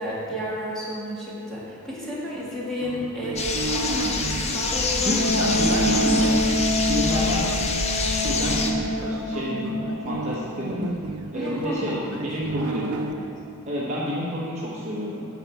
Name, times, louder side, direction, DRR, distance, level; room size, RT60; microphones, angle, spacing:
voice 1, 0.0-5.4 5.7-5.9 7.0-7.3 11.3-12.3 12.6-12.7 13.0-13.3, equal, ahead, -9 dB, 1.9 m, -32 dB
sound 1, 2.8-7.5 8.2-13.1, right 3 dB, 90° right, 0.6 m, -33 dB
sound 2, 3.4-8.7, left 3 dB, 30° left, 0.6 m, -26 dB
voice 2, 5.0-6.4 6.8-7.7 8.2-10.9 11.3-13.0 13.7-15.3, equal, 30° right, -6 dB, 1.0 m, -28 dB
Wind instrument woodwind instrument, 5.2-10.7, left 1 dB, 85° left, 1.3 m, -26 dB
9.5 x 4.1 x 7.0 m, 2.6 s
head